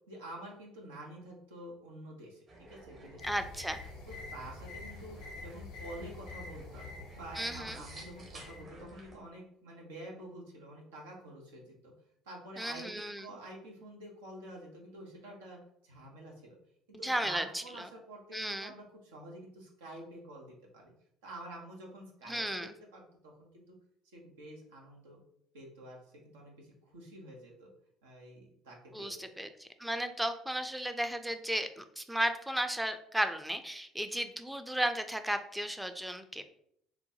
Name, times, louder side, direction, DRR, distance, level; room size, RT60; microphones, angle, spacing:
voice 1, 0.1-3.3 4.1-11.9 12.2-15.6 15.8-16.6 17.0-20.9 21.2-23.8 24.1-25.2 25.5-26.0 26.2-27.7 28.0-29.3, right 1 dB, 85° right, -1 dB, 0.9 m, -48 dB
sound 1, 2.5-9.2, right 2 dB, 50° right, 1.2 m, -53 dB
sound 2, 3.2-8.6, left 3 dB, 70° left, 0.7 m, -47 dB
voice 2, 3.2-3.8 7.4-7.8 12.6-13.3 17.0-17.6 18.3-18.7 22.3-22.7 28.9-36.4, right 1 dB, 5° right, 8 dB, 0.4 m, -34 dB
4.0 x 2.2 x 2.8 m, 0.70 s
hypercardioid pair, 65°, 0 cm